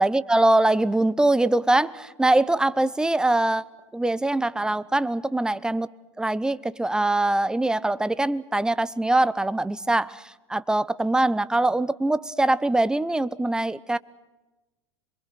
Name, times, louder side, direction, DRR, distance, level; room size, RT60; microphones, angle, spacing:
voice 1, 0.0-3.6 3.9-5.9 6.2-14.0, right 2 dB, 5° right, 0.8 m, -23 dB
27.5 x 23.0 x 6.5 m
figure-of-eight pair, 90°, 16 cm